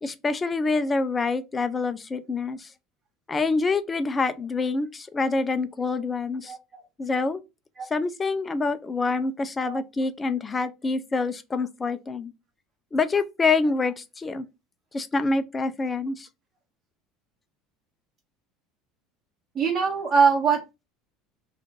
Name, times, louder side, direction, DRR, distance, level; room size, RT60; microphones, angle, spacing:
voice 1, 0.0-2.7 3.3-6.5 7.0-7.4 7.9-12.3 12.9-14.5 14.9-16.3, left 3 dB, 25° left, 0.4 m, -26 dB
voice 2, 19.5-20.6, right 5 dB, 40° right, 1.0 m, -22 dB
2.5 x 2.5 x 3.7 m
hypercardioid pair, 85°, 0 cm